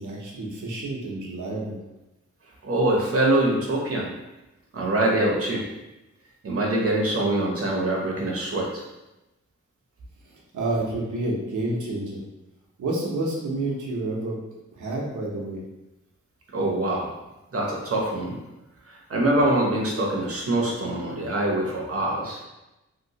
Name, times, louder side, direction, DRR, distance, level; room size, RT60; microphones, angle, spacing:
voice 1, 0.0-1.8 10.2-12.2 12.8-14.4 14.8-15.6, right 2 dB, 80° right, -3 dB, 0.9 m, -29 dB
voice 2, 2.6-4.1 4.7-5.6 6.4-8.8 16.5-17.1 17.5-18.4 18.8-22.4, right 1 dB, 50° right, -2 dB, 0.8 m, -24 dB
2.9 x 2.9 x 2.8 m, 0.99 s
wide cardioid pair, 135°, 29 cm